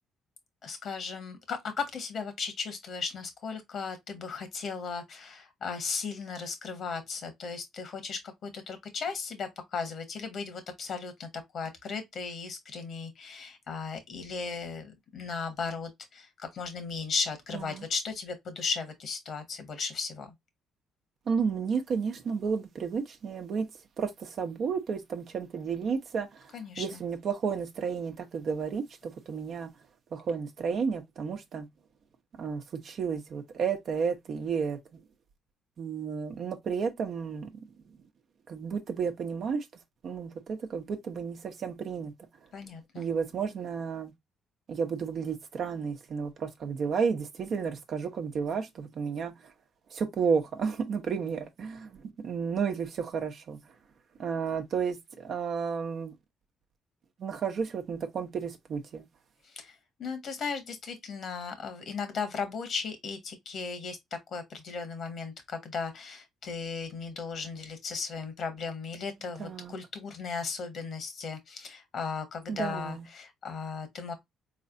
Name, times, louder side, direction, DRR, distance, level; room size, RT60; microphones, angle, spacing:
voice 1, 0.6-11.3 11.5-20.3 26.5-26.8 42.5-43.1 59.4-64.0 64.3-74.1, left 5 dB, 60° left, 1.3 m, -36 dB
voice 2, 17.5-17.8 21.3-23.7 24.0-26.5 26.8-29.7 30.1-31.7 32.4-35.0 35.8-37.6 38.5-39.7 40.0-42.1 42.9-44.1 44.7-49.3 49.9-53.6 54.2-56.1 57.2-59.0 69.4-69.7 72.5-73.1, right 6 dB, 60° right, 0.9 m, -32 dB
4.0 x 3.3 x 2.5 m
hypercardioid pair, 55°, 0 cm